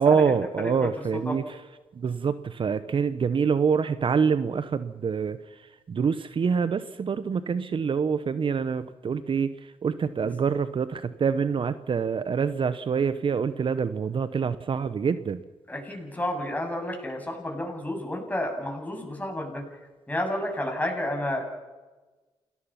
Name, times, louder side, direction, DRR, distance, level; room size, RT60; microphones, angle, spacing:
voice 1, 0.0-1.4 2.0-5.4 5.9-9.5 9.8-15.4, right 6 dB, 50° right, 13 dB, 1.0 m, -25 dB
voice 2, 15.7-19.6 20.1-21.4, left 1 dB, 15° left, 2 dB, 8.0 m, -30 dB
28.5 x 18.5 x 5.8 m, 1.2 s
supercardioid pair, 50°, 11 cm